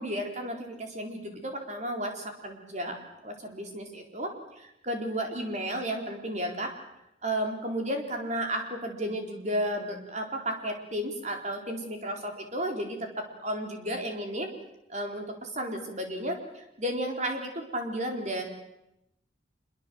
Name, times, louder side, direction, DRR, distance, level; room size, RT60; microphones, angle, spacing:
voice 1, 0.0-3.0 3.2-6.7 7.2-14.5 14.9-18.4, right 1 dB, 40° right, 3 dB, 4.2 m, -33 dB
26.0 x 23.0 x 7.9 m, 0.86 s
head